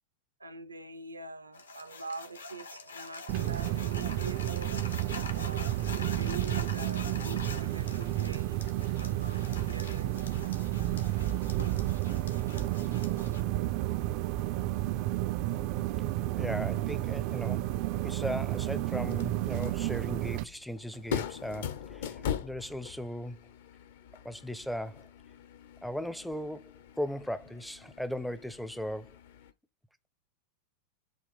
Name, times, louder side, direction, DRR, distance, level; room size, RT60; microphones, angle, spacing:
voice 1, 0.4-4.8 5.3-8.6 9.0-10.6 10.9-11.1, right 3 dB, 80° right, 0.8 m, -44 dB
sound 1, 1.5-13.4, left 3 dB, 70° left, 1.3 m, -45 dB
sound 2, 3.3-20.4, right 15 dB, 45° right, 0.5 m, -31 dB
voice 2, 16.3-17.7 18.0-23.5 24.2-25.1 25.8-29.2, equal, ahead, 0.6 m, -37 dB
sound 3, 19.0-29.5, left 8 dB, 55° left, 0.9 m, -41 dB
7.8 x 3.2 x 5.0 m
figure-of-eight pair, 90°, 0 cm